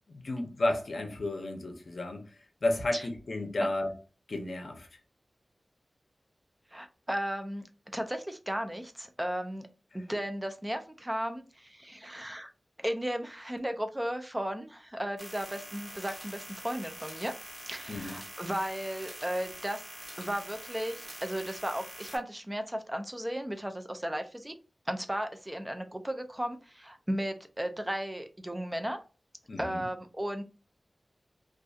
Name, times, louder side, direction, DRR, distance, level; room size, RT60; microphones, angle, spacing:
voice 1, 0.1-2.2 2.6-3.9 4.3-4.9 17.9-18.2 29.5-29.8, left 2 dB, 70° left, 0.5 m, -32 dB
voice 2, 6.7-7.7 7.9-9.7 9.9-12.5 12.8-17.3 17.7-19.8 20.2-24.5 24.9-29.0 29.6-30.4, equal, 15° right, 0.3 m, -35 dB
sound 1, 15.2-22.2, right 1 dB, 30° right, 1.1 m, -45 dB
2.6 x 2.4 x 2.3 m
wide cardioid pair, 80°, 0 cm